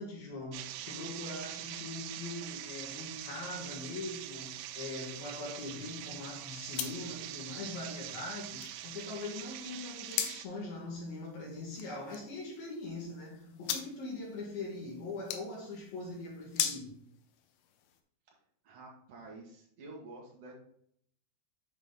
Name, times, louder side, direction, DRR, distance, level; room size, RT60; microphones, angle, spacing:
voice 1, 0.0-16.9, left 2 dB, 60° left, 3.0 m, -42 dB
sound 1, 0.5-10.5, right 13 dB, 85° right, 3.0 m, -44 dB
sound 2, 2.8-18.0, left 10 dB, 85° left, 3.1 m, -43 dB
voice 2, 18.6-20.5, right 2 dB, 55° right, 1.8 m, -49 dB
8.0 x 5.0 x 3.7 m
omnidirectional pair, 5.4 m